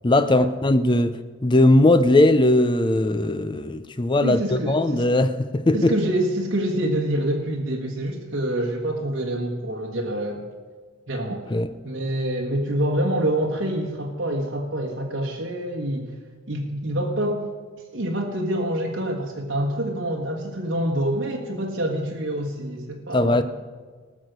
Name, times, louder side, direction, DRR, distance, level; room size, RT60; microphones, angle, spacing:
voice 1, 0.0-6.0 11.5-11.7 23.1-23.4, left 1 dB, 20° left, 0.5 m, -19 dB
voice 2, 4.2-5.0 5.7-10.5 11.1-11.5 11.8-16.1 16.5-17.5 17.9-23.4, right 1 dB, 60° right, 1.5 m, -26 dB
18.5 x 6.4 x 6.6 m
head